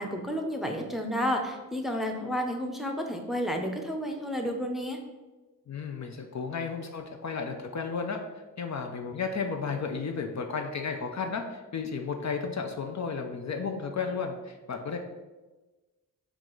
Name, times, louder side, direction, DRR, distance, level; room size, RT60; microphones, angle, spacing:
voice 1, 0.0-5.0, equal, ahead, 2 dB, 0.6 m, -31 dB
voice 2, 5.7-8.2 8.6-15.0, left 5 dB, 50° left, 4 dB, 0.4 m, -33 dB
4.5 x 2.4 x 3.8 m, 1.2 s
cardioid pair, 50°, 35 cm